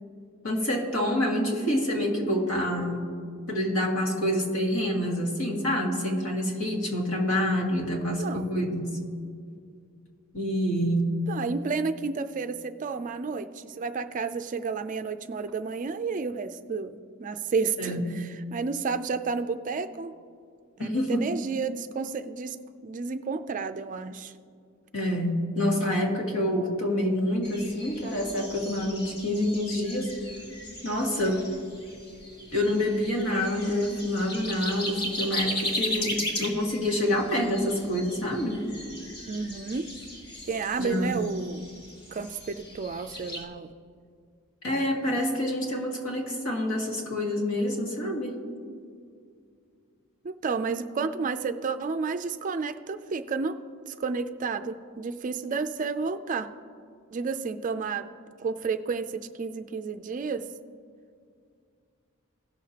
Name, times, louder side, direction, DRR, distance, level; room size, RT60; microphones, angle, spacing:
voice 1, 0.4-3.0 3.5-9.0 10.3-11.2 17.8-18.1 20.8-21.3 24.9-30.2 30.8-31.5 32.5-38.6 40.8-41.2 44.6-48.4, left 1 dB, 65° left, -1 dB, 1.9 m, -27 dB
voice 2, 11.3-20.1 20.8-22.6 22.8-24.3 39.3-39.9 40.4-41.6 42.1-43.7 50.2-53.6 53.9-56.5 57.1-58.1 58.4-60.5, right 4 dB, 35° right, 9 dB, 0.4 m, -31 dB
sound 1, 27.4-43.4, left 1 dB, 50° left, 1.7 m, -37 dB
17.5 x 6.6 x 2.9 m, 2.3 s
head